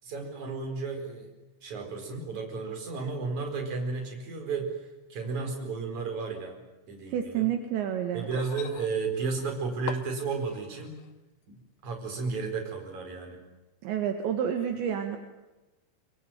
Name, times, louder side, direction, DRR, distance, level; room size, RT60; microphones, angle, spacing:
voice 1, 0.0-1.3 1.6-6.6 6.9-7.5 8.1-11.0 11.5-13.4, right 4 dB, 40° right, 4 dB, 5.7 m, -33 dB
voice 2, 7.1-8.3 13.8-15.2, right 9 dB, 70° right, 5 dB, 3.8 m, -29 dB
sound 1, 8.2-11.2 12.2-12.3, left 12 dB, 75° left, 3.4 m, -43 dB
25.0 x 23.5 x 9.2 m, 1.1 s
omnidirectional pair, 5.6 m